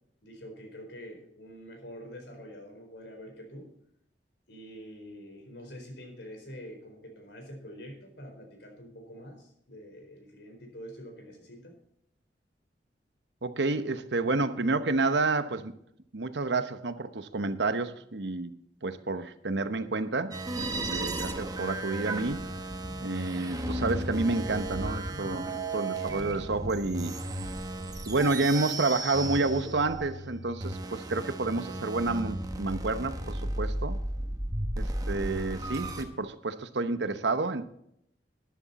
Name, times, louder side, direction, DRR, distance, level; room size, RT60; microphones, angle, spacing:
voice 1, 0.2-3.7 4.5-11.8 31.6-31.8, equal, 70° left, 3 dB, 4.4 m, -46 dB
voice 2, 13.4-15.7 16.1-18.5 18.8-22.5 23.0-27.2 28.1-34.0 34.8-37.6, right 3 dB, 75° right, 11 dB, 1.0 m, -30 dB
sound 1, 20.3-36.0, right 1 dB, 20° right, 1.3 m, -34 dB
13.0 x 10.5 x 4.2 m, 0.72 s
head